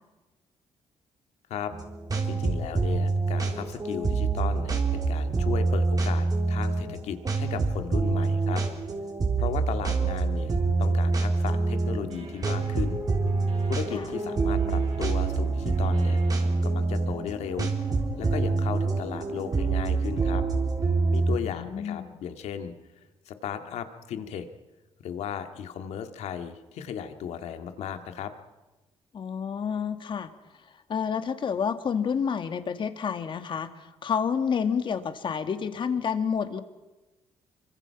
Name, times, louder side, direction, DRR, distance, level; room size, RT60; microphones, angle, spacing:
sound 1, 1.7-21.4, right 3 dB, 35° right, 3.4 m, -26 dB
voice 1, 2.2-8.6 9.4-13.0 13.7-16.2 16.6-17.7 18.2-20.4 21.1-22.7 23.3-24.5 25.0-28.3, left 8 dB, 85° left, 7 dB, 2.1 m, -35 dB
sound 2, 11.7-16.6, right 6 dB, 70° right, 7.0 m, -48 dB
voice 2, 21.4-22.2 29.1-30.3 30.9-36.6, left 7 dB, 50° left, 9 dB, 1.9 m, -29 dB
26.0 x 24.5 x 5.9 m, 1.1 s
cardioid pair, 120°, 11 cm